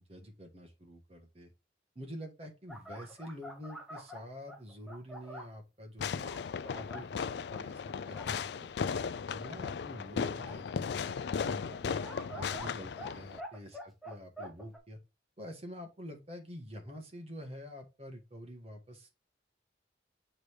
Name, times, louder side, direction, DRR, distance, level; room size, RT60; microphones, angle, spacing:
voice 1, 0.0-1.5 1.9-6.3 6.7-8.9 9.3-11.9 12.3-15.0 15.4-19.1, equal, 35° right, 1.4 m, -47 dB
sound 1, 2.7-5.6 6.2-7.1 7.5-7.6 8.0-8.3 9.0-9.1 10.4-10.6 11.4-13.1 13.4-14.8, equal, ahead, 0.8 m, -46 dB
Fireworks, 6.0-13.4, left 6 dB, 70° left, 0.3 m, -36 dB
6.6 x 3.4 x 4.6 m
head